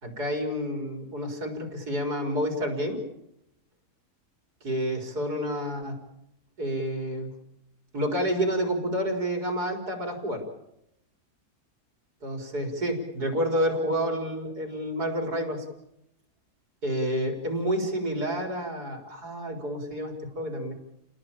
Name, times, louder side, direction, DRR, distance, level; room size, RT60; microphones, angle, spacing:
voice 1, 0.0-3.0 4.6-6.0 6.6-7.3 7.9-10.4 12.2-15.6 16.8-20.7, equal, 80° right, 4 dB, 4.9 m, -29 dB
30.0 x 18.5 x 8.8 m, 0.86 s
omnidirectional pair, 1.7 m